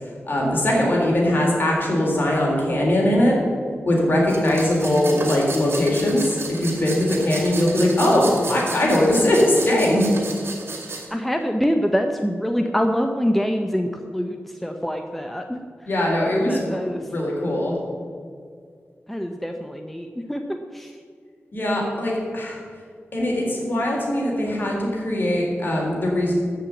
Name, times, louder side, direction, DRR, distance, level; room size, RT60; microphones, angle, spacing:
voice 1, 0.3-3.4 3.9-10.0 15.9-16.8 17.0-17.7 21.5-22.6 23.1-26.3, left 1 dB, 45° left, -2 dB, 3.7 m, -21 dB
sound 1, 4.3-11.1, right 3 dB, 60° right, 2.6 m, -34 dB
voice 2, 11.1-15.7 16.5-17.0 19.1-20.9, equal, 5° left, 4 dB, 0.6 m, -25 dB
14.0 x 5.9 x 8.1 m, 2.1 s
wide cardioid pair, 135°, 4 cm